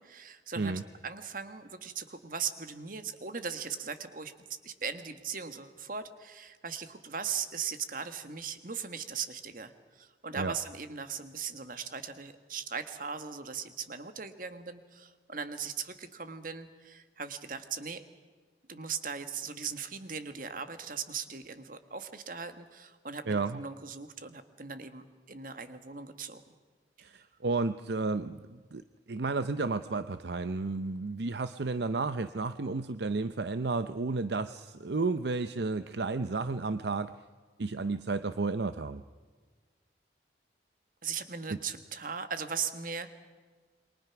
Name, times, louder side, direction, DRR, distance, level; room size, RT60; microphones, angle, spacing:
voice 1, 0.0-4.3 4.6-18.0 18.7-26.5 27.0-27.3 41.0-43.1, right 6 dB, 45° right, 9 dB, 1.6 m, -39 dB
voice 2, 23.3-23.6 27.0-28.8 29.1-37.1 37.6-39.0 41.5-41.6, right 3 dB, 65° right, 11 dB, 0.7 m, -32 dB
28.5 x 23.5 x 6.0 m, 1.5 s
head